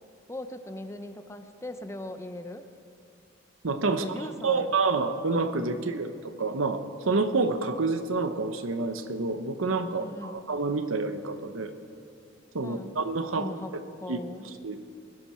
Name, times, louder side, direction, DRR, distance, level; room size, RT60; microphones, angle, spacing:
voice 1, 0.3-2.6 4.0-4.7 5.7-6.0 10.0-10.4 12.6-13.0 13.4-13.7 14.0-14.5, left 1 dB, 15° left, 8 dB, 0.7 m, -39 dB
voice 2, 3.6-11.7 12.5-13.5 14.1-14.2 14.6-14.8, right 3 dB, 85° right, 9 dB, 0.9 m, -28 dB
20.5 x 11.0 x 4.4 m, 2.5 s
head